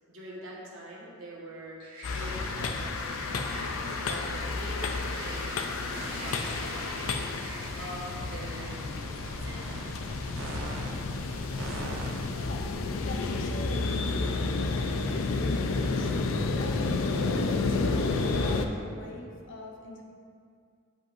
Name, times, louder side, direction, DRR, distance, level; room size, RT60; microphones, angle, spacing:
voice 1, 0.1-1.8 2.1-9.9, equal, 70° right, -5 dB, 1.4 m, -44 dB
sound 1, 1.8-8.9, right 1 dB, 25° right, 1.6 m, -44 dB
sound 2, 2.0-18.7, left 3 dB, 80° left, 0.4 m, -31 dB
sound 3, 5.9-7.1 7.5-12.5, right 2 dB, 85° right, 0.7 m, -43 dB
voice 2, 12.3-16.1 16.5-20.1, left 2 dB, 60° left, 1 dB, 0.8 m, -43 dB
9.0 x 5.3 x 2.6 m, 2.3 s
head